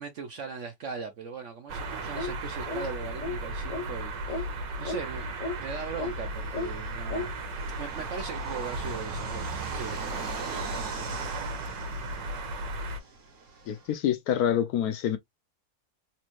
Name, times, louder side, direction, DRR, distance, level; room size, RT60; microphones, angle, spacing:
voice 1, 0.0-11.5, right 5 dB, 65° right, 0.7 m, -40 dB
sound 1, 1.7-13.0, right 2 dB, 85° right, 1.7 m, -35 dB
sound 2, 2.1-2.4 2.7-2.9 3.2-3.4 3.7-3.9 4.3-4.5 4.8-5.0 5.4-5.6 6.0-6.1 6.5-6.7 7.1-7.3, left 3 dB, 35° left, 0.6 m, -33 dB
Fixed-wing aircraft airplane, 4.7-13.9, right 4 dB, 50° right, 1.2 m, -45 dB
voice 2, 13.7-15.2, left 10 dB, 70° left, 1.0 m, -26 dB
4.1 x 3.0 x 2.5 m
omnidirectional pair, 1.8 m